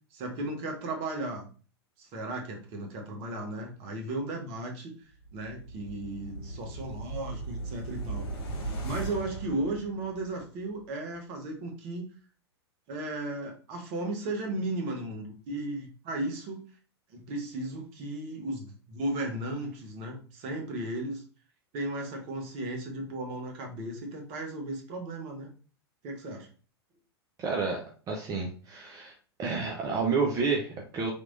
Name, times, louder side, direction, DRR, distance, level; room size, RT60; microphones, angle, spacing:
voice 1, 0.1-1.5 2.0-8.3 8.8-12.1 12.9-16.7 17.1-21.2 21.7-25.5 26.0-26.5, right 2 dB, 45° right, 2 dB, 1.0 m, -35 dB
sound 1, 5.2-10.4 10.8-10.9, right 2 dB, 60° left, 1.3 m, -38 dB
voice 2, 27.4-29.1 29.4-31.1, right 4 dB, 25° right, 0 dB, 0.6 m, -30 dB
3.5 x 3.0 x 2.5 m, 0.38 s
hypercardioid pair, 100°, 14 cm